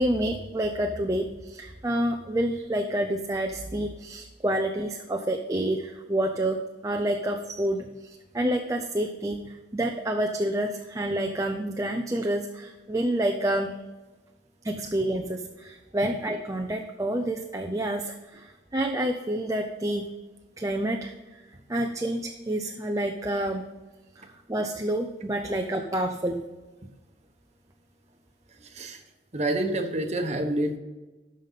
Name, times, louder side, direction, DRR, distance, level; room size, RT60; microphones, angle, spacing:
voice 1, 0.0-13.7 14.6-20.1 20.6-21.4 21.7-23.6 24.2-26.4, right 1 dB, 20° right, 3 dB, 0.5 m, -28 dB
voice 2, 28.5-29.0 29.3-30.8, right 1 dB, 35° right, 5 dB, 1.1 m, -28 dB
13.0 x 5.3 x 4.0 m, 1.2 s
head